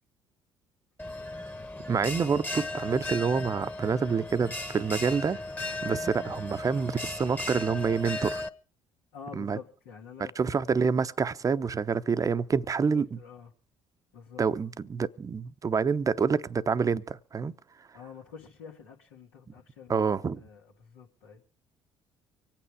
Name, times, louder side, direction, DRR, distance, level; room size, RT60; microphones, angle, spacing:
Bell, 1.0-8.5, left 2 dB, 15° left, 1.3 m, -36 dB
voice 1, 1.9-5.4 5.8-8.4 9.4-9.6 10.4-13.2 14.4-17.5 19.9-20.4, right 5 dB, 35° right, 0.8 m, -27 dB
voice 2, 9.1-10.3 10.7-10.8 12.9-13.5 14.1-14.4 17.9-20.1 20.4-21.4, left 6 dB, 85° left, 2.1 m, -47 dB
25.0 x 9.0 x 4.8 m
hypercardioid pair, 55°, 10 cm